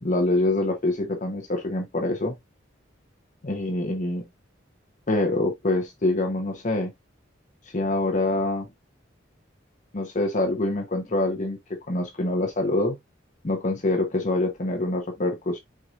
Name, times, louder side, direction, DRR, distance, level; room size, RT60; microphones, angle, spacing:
voice 1, 0.0-2.4 3.4-4.2 5.1-6.9 7.7-8.7 9.9-11.6 11.9-13.0 13.4-15.6, left 2 dB, 40° left, 0.9 m, -25 dB
4.7 x 4.3 x 2.4 m
head